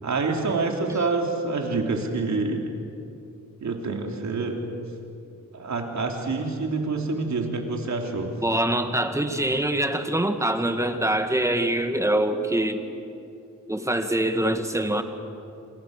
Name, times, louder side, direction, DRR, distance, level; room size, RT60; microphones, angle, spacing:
voice 1, 0.0-2.7 3.6-4.7 5.5-8.3, right 3 dB, 65° right, 2 dB, 3.4 m, -27 dB
voice 2, 8.4-12.9 13.7-15.0, right 1 dB, 10° right, 7 dB, 1.8 m, -24 dB
27.5 x 27.0 x 6.7 m, 2.7 s
wide cardioid pair, 115°, 31 cm